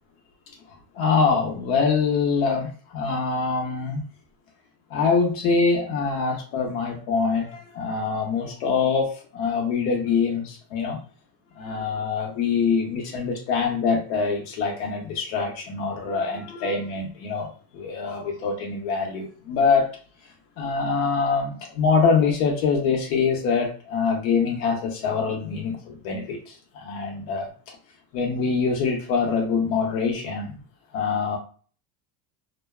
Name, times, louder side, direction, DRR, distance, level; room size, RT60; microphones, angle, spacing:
voice 1, 0.9-4.0 4.9-11.0 11.6-19.9 20.6-27.5 28.1-30.5 30.9-31.4, left 5 dB, 75° left, 0 dB, 0.8 m, -24 dB
2.6 x 2.2 x 2.2 m, 0.42 s
cardioid pair, 125°, 48 cm